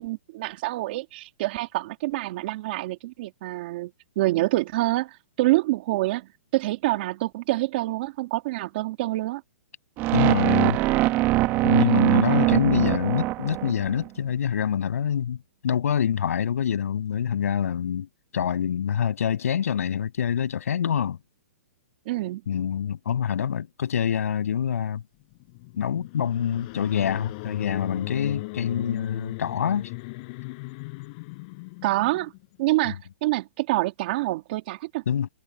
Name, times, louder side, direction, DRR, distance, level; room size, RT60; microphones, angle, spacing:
voice 1, 0.0-3.9 4.2-9.4 11.8-12.3 22.1-22.4 31.8-32.3 32.6-35.0, right 18 dB, 40° right, 2.3 m, -27 dB
sound 1, 10.0-14.1, right 17 dB, 25° right, 1.0 m, -22 dB
voice 2, 10.1-10.8 11.6-15.4 15.6-18.1 18.3-21.2 22.5-25.0 25.8-29.9 35.1-35.3, left 8 dB, 70° left, 7.5 m, -25 dB
sound 2, 25.2-32.6, left 26 dB, 35° left, 5.1 m, -37 dB
hypercardioid pair, 160°, 8 cm